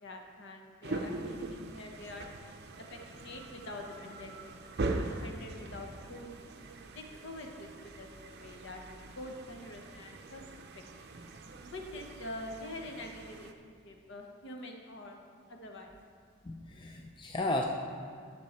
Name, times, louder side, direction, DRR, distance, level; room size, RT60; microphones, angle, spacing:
voice 1, 0.0-2.3 2.9-6.5 6.9-10.4 10.7-11.1 11.7-15.2 15.5-16.0, left 1 dB, 60° left, 3 dB, 1.0 m, -46 dB
sound 1, 0.8-13.5, right 2 dB, 50° right, 0.6 m, -42 dB
voice 2, 16.5-17.6, left 2 dB, 20° left, 1 dB, 0.5 m, -34 dB
10.5 x 6.3 x 4.2 m, 2.1 s
head